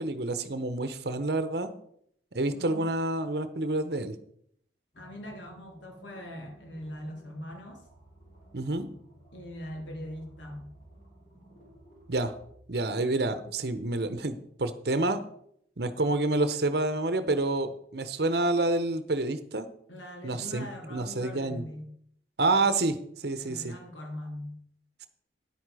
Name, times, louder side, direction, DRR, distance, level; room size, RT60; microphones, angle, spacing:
voice 1, 0.0-1.7 2.3-4.2 8.5-8.9 12.1-12.3 12.7-15.2 15.8-19.7 20.2-21.6 22.4-23.7, right 2 dB, 60° right, 11 dB, 0.9 m, -28 dB
voice 2, 2.5-2.9 5.0-7.9 9.3-10.7 19.9-21.9 23.4-24.6, equal, 85° left, 2 dB, 2.6 m, -41 dB
sound 1, 4.9-12.5, right 1 dB, 45° left, 3.6 m, -55 dB
9.9 x 8.6 x 4.9 m, 0.69 s
head